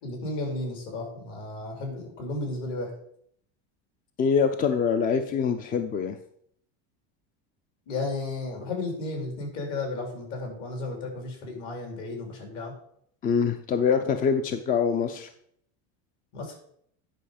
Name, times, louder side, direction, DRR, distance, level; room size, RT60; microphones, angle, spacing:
voice 1, 0.0-2.9 7.9-12.7 16.3-16.5, left 2 dB, 60° left, 2 dB, 3.1 m, -33 dB
voice 2, 4.2-6.2 13.2-15.3, left 6 dB, 25° left, 9 dB, 0.4 m, -24 dB
10.0 x 5.1 x 5.0 m, 0.67 s
cardioid pair, 150°, 33 cm